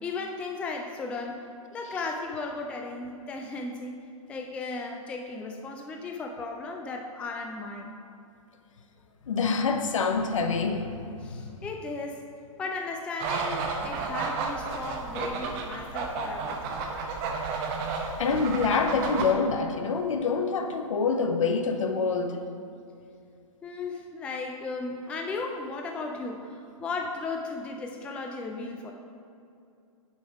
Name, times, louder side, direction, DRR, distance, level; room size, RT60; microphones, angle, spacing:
voice 1, 0.0-8.0 11.2-12.3 12.6-16.7 23.6-28.9, left 3 dB, 5° left, 3 dB, 0.3 m, -36 dB
voice 2, 9.3-11.3 18.2-22.4, left 4 dB, 65° left, 6 dB, 0.7 m, -26 dB
sound 1, 13.2-19.3, right 4 dB, 30° right, 0.8 m, -32 dB
7.2 x 5.1 x 4.5 m, 2.5 s
figure-of-eight pair, 115°, 18 cm